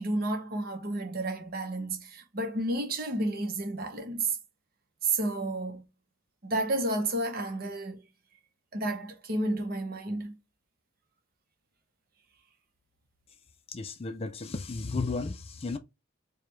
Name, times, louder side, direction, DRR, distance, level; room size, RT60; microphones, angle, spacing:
voice 1, 0.0-4.4 5.0-5.8 6.4-8.1 8.7-10.3, right 2 dB, 45° right, 0.8 m, -31 dB
voice 2, 13.7-15.8, left 3 dB, 30° left, 0.4 m, -34 dB
4.8 x 2.3 x 3.1 m
head